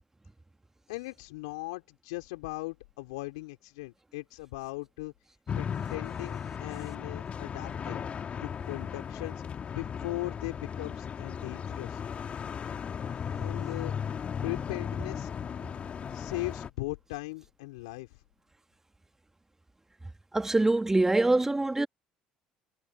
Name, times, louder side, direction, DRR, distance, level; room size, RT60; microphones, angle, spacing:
voice 1, 0.9-5.1 5.5-8.1 8.4-9.4 9.7-12.0 13.3-13.9 14.4-15.3 16.1-18.2, left 23 dB, 80° left, 4.4 m, -39 dB
sound 1, 5.5-16.7, left 7 dB, 45° left, 2.0 m, -36 dB
voice 2, 20.3-21.9, right 2 dB, 15° right, 1.7 m, -24 dB
hypercardioid pair, 65°, 3 cm